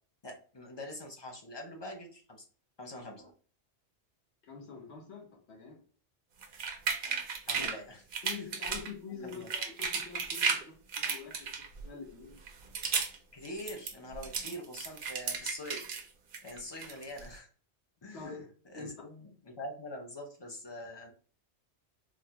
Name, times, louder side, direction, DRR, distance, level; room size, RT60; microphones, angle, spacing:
voice 1, 0.2-2.5 2.8-3.3 7.0-8.0 8.3-8.5 9.1-9.4 13.3-15.8 16.4-17.5 18.0-21.1, left 1 dB, 30° left, 1 dB, 0.5 m, -44 dB
voice 2, 4.4-5.8 7.6-7.7 8.2-11.5 11.8-12.5 18.1-18.5 18.7-18.9, left 5 dB, 70° left, 0 dB, 1.3 m, -45 dB
sound 1, 6.4-7.8 8.1-8.9 9.3-10.6 10.9-11.9 12.4-13.2 13.4-16.0 16.3-17.3, right 5 dB, 60° right, 0.7 m, -34 dB
3.8 x 2.1 x 2.8 m, 0.42 s
omnidirectional pair, 1.2 m